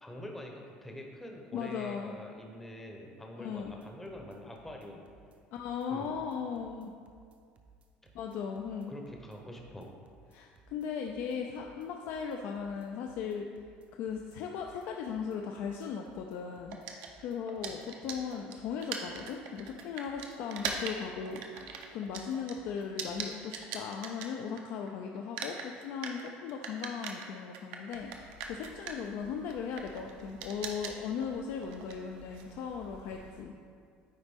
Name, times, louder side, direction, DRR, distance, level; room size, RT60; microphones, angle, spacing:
voice 1, 0.0-5.0 5.9-6.2 8.0-8.1 8.9-9.9, left 1 dB, 10° left, 1 dB, 0.7 m, -45 dB
voice 2, 1.5-2.1 3.4-3.7 5.5-6.9 8.1-8.9 10.3-13.5 13.9-33.5, left 6 dB, 65° left, 2 dB, 0.4 m, -38 dB
sound 1, 3.6-23.4, right 4 dB, 40° right, 0.6 m, -61 dB
sound 2, 16.7-24.9 25.2-33.4, right 6 dB, 85° right, 0.7 m, -42 dB
9.3 x 4.0 x 3.6 m, 2.2 s
cardioid pair, 145°, 4 cm